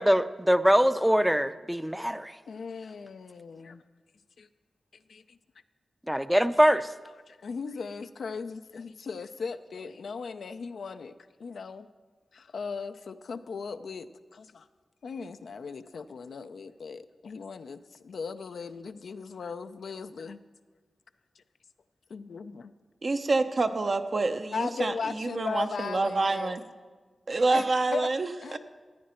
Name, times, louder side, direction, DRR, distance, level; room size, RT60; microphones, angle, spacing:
voice 1, 0.0-2.4 6.1-6.9, equal, 5° right, 12 dB, 0.5 m, -23 dB
voice 2, 2.5-3.8 4.4-4.5 5.1-5.4 7.3-11.9 12.3-14.7 15.0-20.4 22.1-22.7 24.5-26.6 27.5-27.7 27.9-28.1 28.4-28.6, left 5 dB, 80° left, 10 dB, 0.5 m, -37 dB
voice 3, 23.0-26.6 27.3-28.6, right 3 dB, 55° right, 7 dB, 0.8 m, -27 dB
14.5 x 9.4 x 4.4 m, 1.4 s
cardioid pair, 45°, 0 cm